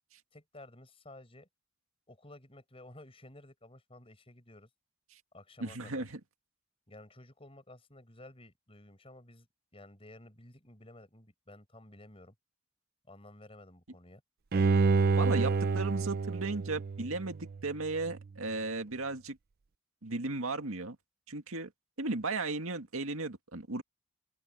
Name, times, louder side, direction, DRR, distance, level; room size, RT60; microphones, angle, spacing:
voice 1, 0.3-1.5 2.1-4.7 5.3-6.1 6.9-9.5 9.7-12.3 13.1-14.2, left 1 dB, 25° left, 5.5 m, -53 dB
voice 2, 5.6-6.2 15.2-19.4 20.0-21.0 21.3-21.7 22.0-23.8, right 3 dB, 85° right, 2.1 m, -35 dB
Bowed string instrument, 14.5-17.6 18.0-18.1, right 4 dB, 45° right, 0.4 m, -28 dB
open air
head